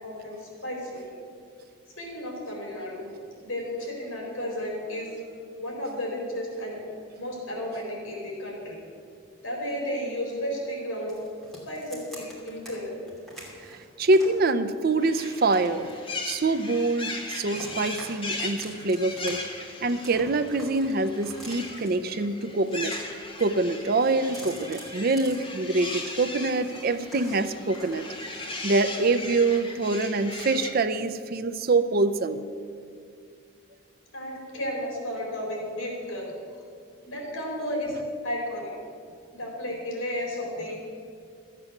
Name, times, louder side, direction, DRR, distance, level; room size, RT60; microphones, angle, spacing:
voice 1, 0.0-1.1 2.0-3.1 3.4-5.1 5.6-6.8 7.2-8.8 9.4-11.1 11.7-13.0 34.1-36.3 37.0-38.0 38.2-38.7 39.4-40.8, equal, 75° left, -1 dB, 4.1 m, -33 dB
sound 1, 11.1-12.7 13.1-14.4 14.9-16.9 17.2-18.1 18.4-19.3 19.6-21.9 22.5-23.5 23.8-26.1 26.5-29.3 29.6-30.4, equal, ahead, 2.7 m, -47 dB
voice 2, 13.7-15.9 16.2-19.4 19.8-22.9 23.4-28.0 28.4-32.4, right 3 dB, 45° right, 11 dB, 0.5 m, -25 dB
sound 2, 15.0-30.7, left 2 dB, 25° left, 1.2 m, -38 dB
13.5 x 8.3 x 7.1 m, 2.2 s
head